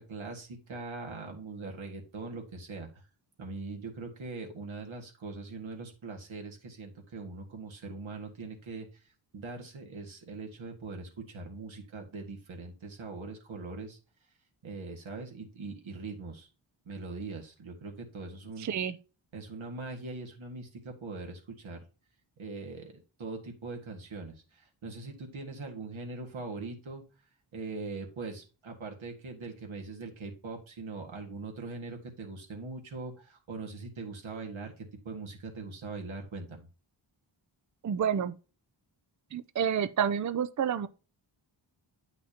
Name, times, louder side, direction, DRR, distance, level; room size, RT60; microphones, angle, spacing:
voice 1, 0.0-3.0 3.4-9.1 9.3-14.0 14.6-16.5 16.9-18.7 19.3-21.8 22.4-27.0 27.5-36.7, right 3 dB, 80° right, 1.8 m, -41 dB
voice 2, 18.6-18.9 37.8-38.3 39.3-40.9, right 8 dB, 40° right, 0.5 m, -29 dB
8.7 x 6.0 x 2.8 m
wide cardioid pair, 85°, 47 cm